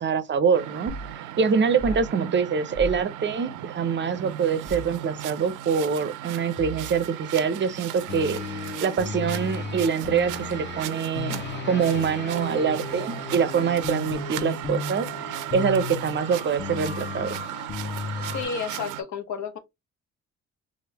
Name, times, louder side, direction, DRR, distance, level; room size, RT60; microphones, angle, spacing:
voice 1, 0.0-17.4, right 6 dB, 40° right, 0.5 m, -25 dB
sound 1, 0.5-19.0, right 12 dB, 90° right, 0.5 m, -37 dB
sound 2, 0.9-1.1 1.8-2.1 2.7-3.0 4.7-5.0 6.6-7.1, right 1 dB, 10° left, 0.8 m, -35 dB
sound 3, 8.1-18.5, left 5 dB, 35° left, 0.9 m, -35 dB
voice 2, 18.2-19.6, left 6 dB, 70° left, 0.8 m, -32 dB
3.3 x 2.6 x 2.8 m
cardioid pair, 90°, 30 cm